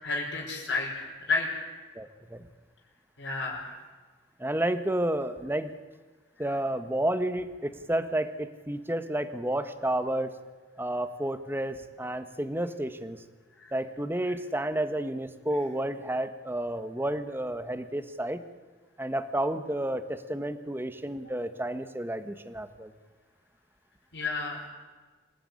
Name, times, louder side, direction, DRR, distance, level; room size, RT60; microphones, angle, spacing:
voice 1, 0.0-1.5 3.2-3.7 13.6-13.7 24.1-24.6, left 3 dB, 70° left, -3 dB, 5.8 m, -31 dB
voice 2, 1.9-2.5 4.4-5.7 6.4-10.4 10.8-13.2 13.7-18.4 19.0-22.9, right 1 dB, 10° right, 10 dB, 1.5 m, -31 dB
26.5 x 18.0 x 9.9 m, 1.3 s
head